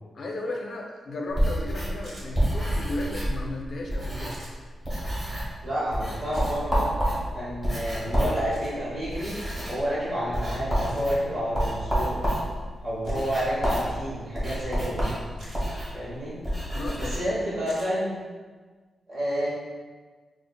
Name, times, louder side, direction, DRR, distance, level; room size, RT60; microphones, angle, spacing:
voice 1, 0.1-4.4 16.7-17.2 17.6-17.7, left 2 dB, 50° left, 1 dB, 0.5 m, -34 dB
sound 1, 1.3-4.6 4.8-5.6 5.9-17.2, equal, 20° right, 1.0 m, -29 dB
sound 2, 2.0-2.3 4.3-4.5 6.3-6.6 8.5-8.7 10.8-11.1 13.0-13.3 15.4-15.6 17.7-17.9, right 1 dB, 65° right, 1.3 m, -47 dB
voice 2, 5.6-6.9 7.3-9.3 9.7-12.2 12.8-15.0 15.9-16.4 17.0-18.1 19.1-19.5, equal, 45° right, -8 dB, 1.0 m, -29 dB
6.0 x 2.4 x 2.3 m, 1.4 s
wide cardioid pair, 160°, 0 cm